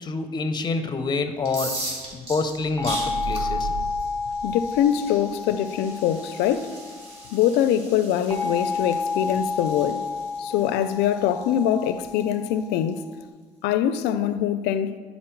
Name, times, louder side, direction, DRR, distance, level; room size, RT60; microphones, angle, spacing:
voice 1, 0.0-1.8 2.1-3.7, left 3 dB, 25° left, 0.6 m, -27 dB
sound 1, 1.4-13.1, right 1 dB, 35° right, 2.5 m, -40 dB
sound 2, 2.6-5.2, right 5 dB, 75° right, 0.4 m, -35 dB
sound 3, 2.8-7.4 8.3-13.0, left 4 dB, 10° left, 1.6 m, -31 dB
voice 2, 4.4-6.8 7.3-10.1 10.4-13.1 13.6-15.0, left 10 dB, 85° left, 0.4 m, -23 dB
10.5 x 4.1 x 4.5 m
cardioid pair, 110°, 17 cm